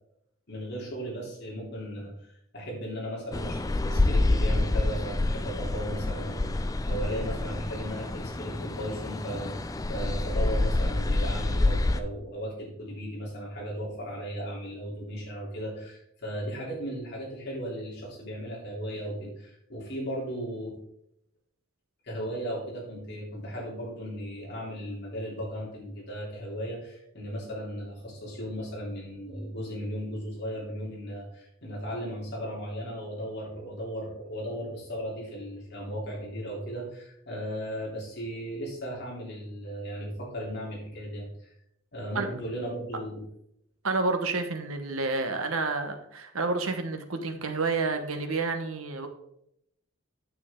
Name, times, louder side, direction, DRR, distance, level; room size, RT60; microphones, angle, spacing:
voice 1, 0.5-20.8 22.0-41.5 41.9-43.2, equal, 50° left, -4 dB, 3.3 m, -36 dB
sound 1, 3.3-12.0, left 2 dB, 15° left, 0.3 m, -27 dB
voice 2, 43.8-49.1, right 3 dB, 75° right, 6 dB, 1.1 m, -29 dB
9.0 x 7.2 x 3.7 m, 0.76 s
head